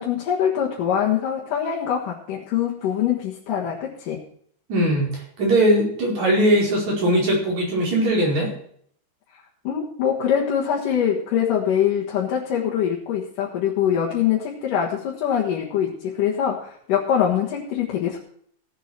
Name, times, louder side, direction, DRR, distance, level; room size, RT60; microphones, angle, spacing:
voice 1, 0.0-4.2 9.6-18.2, left 9 dB, 75° left, -4 dB, 3.1 m, -23 dB
voice 2, 4.7-8.5, right 1 dB, 55° right, -3 dB, 6.2 m, -20 dB
17.0 x 8.1 x 4.5 m, 0.62 s
omnidirectional pair, 3.9 m